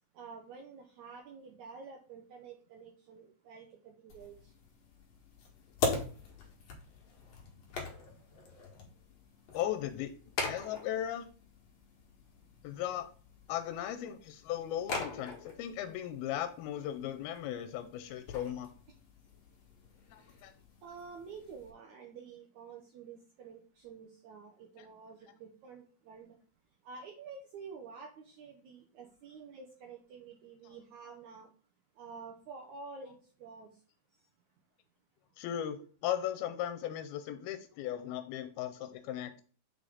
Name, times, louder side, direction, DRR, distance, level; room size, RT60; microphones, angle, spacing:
voice 1, 0.1-4.5 20.8-26.4 26.8-31.5 32.0-33.7, right 5 dB, 70° right, 1 dB, 1.9 m, -49 dB
sound 1, 4.1-21.7, left 3 dB, 55° left, 2.3 m, -42 dB
voice 2, 9.5-10.1 10.4-11.3 12.6-13.1 13.5-18.7 20.1-20.5 24.8-24.9 35.4-39.4, left 11 dB, 90° left, 9 dB, 2.6 m, -37 dB
7.6 x 4.9 x 4.0 m, 0.41 s
omnidirectional pair, 4.4 m